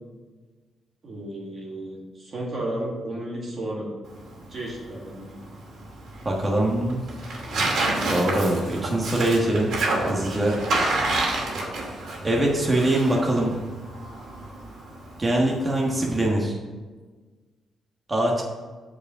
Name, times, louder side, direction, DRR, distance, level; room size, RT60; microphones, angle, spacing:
voice 1, 1.0-3.9 4.5-5.3, right 1 dB, 40° right, -4 dB, 2.2 m, -33 dB
Tearing, 4.0-16.3, right 2 dB, 70° right, 2.3 m, -29 dB
voice 2, 6.2-7.0 8.1-9.7 10.1-10.8 12.2-13.6 15.2-16.6 18.1-18.4, right 1 dB, 20° right, -2 dB, 1.4 m, -23 dB
8.2 x 4.9 x 6.1 m, 1.4 s
cardioid pair, 125°, 0 cm